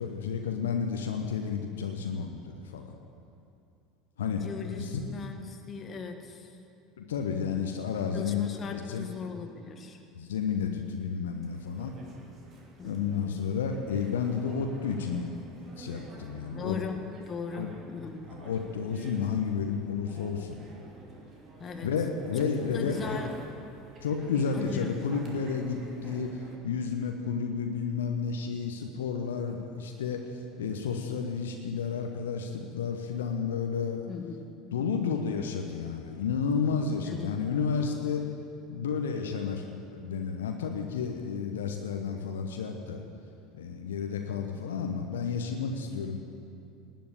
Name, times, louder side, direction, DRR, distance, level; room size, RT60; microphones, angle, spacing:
voice 1, 0.0-2.9 4.2-4.4 4.7-5.0 7.0-9.1 10.1-11.9 12.8-15.3 15.8-16.8 17.5-17.7 18.3-20.6 21.8-23.2 24.0-34.0 34.7-38.3 38.7-43.0 43.5-46.2, left 6 dB, 70° left, 4 dB, 1.0 m, -31 dB
voice 2, 4.4-6.5 8.1-10.0 12.8-13.2 16.5-18.3 21.6-21.9 22.4-23.3 24.5-24.9 34.1-34.5 37.0-37.4, left 5 dB, 30° left, 5 dB, 1.6 m, -39 dB
sound 1, 11.3-26.6, right 2 dB, 35° right, 2.8 m, -49 dB
19.0 x 7.6 x 8.8 m, 2.5 s
figure-of-eight pair, 70°, 0 cm